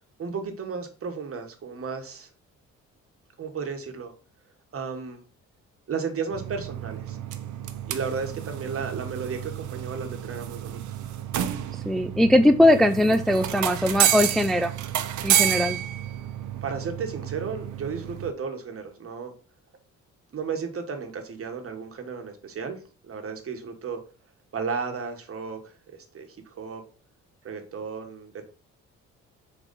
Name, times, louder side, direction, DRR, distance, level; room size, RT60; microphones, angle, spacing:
voice 1, 0.2-2.3 3.4-4.1 4.7-5.2 5.9-7.2 7.9-10.8 16.6-19.3 20.3-24.0 24.5-26.8 27.4-28.5, right 5 dB, 50° right, 5 dB, 1.4 m, -34 dB
sound 1, 6.3-18.3, right 11 dB, 75° right, 0.7 m, -30 dB
voice 2, 11.9-14.7 15.2-15.8, left 1 dB, ahead, 8 dB, 0.4 m, -20 dB
4.6 x 4.0 x 5.3 m, 0.38 s
cardioid pair, 90°, 30 cm